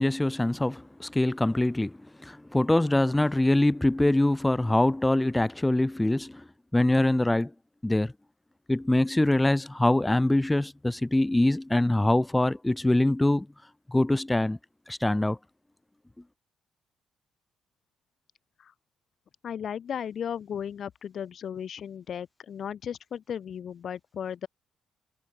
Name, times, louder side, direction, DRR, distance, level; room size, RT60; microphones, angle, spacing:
voice 1, 0.0-6.4 6.7-7.5 7.8-8.1 8.7-13.5 13.9-14.6 14.9-15.4, left 1 dB, 10° left, 0.5 m, -24 dB
voice 2, 19.4-24.5, left 8 dB, 60° left, 0.7 m, -35 dB
cardioid pair, 90°, 0 cm